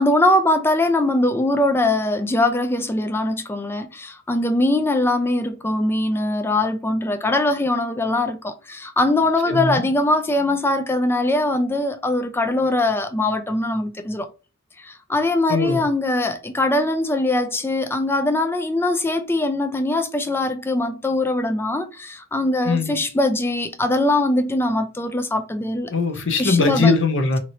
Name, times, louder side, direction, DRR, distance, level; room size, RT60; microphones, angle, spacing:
voice 1, 0.0-14.3 14.8-25.9 26.4-26.9, left 2 dB, 10° left, 0.3 m, -21 dB
voice 2, 9.5-9.8 15.5-15.8 22.6-22.9 25.9-27.4, left 3 dB, 60° left, 0.6 m, -20 dB
2.9 x 2.8 x 2.7 m
head